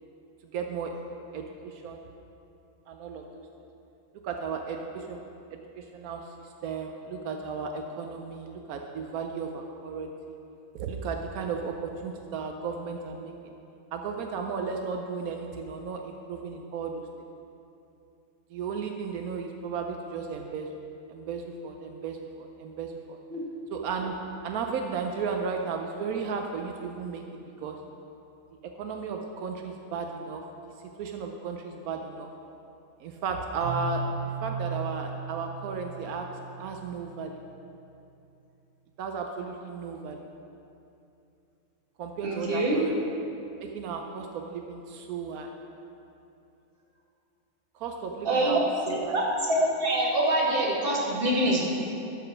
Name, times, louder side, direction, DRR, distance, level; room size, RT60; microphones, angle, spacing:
voice 1, 0.5-0.9 1.3-2.1 2.9-3.4 4.2-5.2 5.5-6.2 6.6-10.4 10.7-13.5 13.9-17.0 18.5-20.8 21.1-23.2 23.7-24.1 24.4-27.2 27.6-27.8 28.8-30.4 31.0-32.3 33.0-34.0 34.4-36.3 36.6-37.4 39.0-40.2 42.0-43.0 43.6-45.5 47.7-48.6 48.9-49.1, right 5 dB, 85° right, 3 dB, 1.1 m, -34 dB
Keyboard (musical), 33.6-37.3, right 3 dB, 65° left, 2.4 m, -36 dB
voice 2, 42.2-42.8 48.2-48.6 49.1-49.2 49.5-51.6, right 1 dB, 40° right, -5 dB, 1.9 m, -25 dB
13.0 x 5.0 x 5.8 m, 2.7 s
omnidirectional pair, 1.5 m